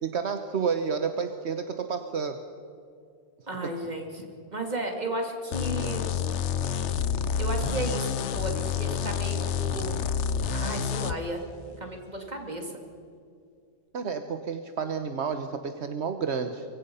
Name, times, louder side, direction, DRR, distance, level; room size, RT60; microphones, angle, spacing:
voice 1, 0.0-2.4 13.9-16.6, right 6 dB, 75° right, 7 dB, 1.3 m, -30 dB
voice 2, 3.5-4.2 4.5-6.2 7.4-10.0 10.5-11.4 11.8-12.8, right 1 dB, 40° right, 2 dB, 3.1 m, -34 dB
sound 1, 5.5-11.2, left 7 dB, 85° left, 1.1 m, -28 dB
24.5 x 23.5 x 5.6 m, 2.4 s
omnidirectional pair, 1.2 m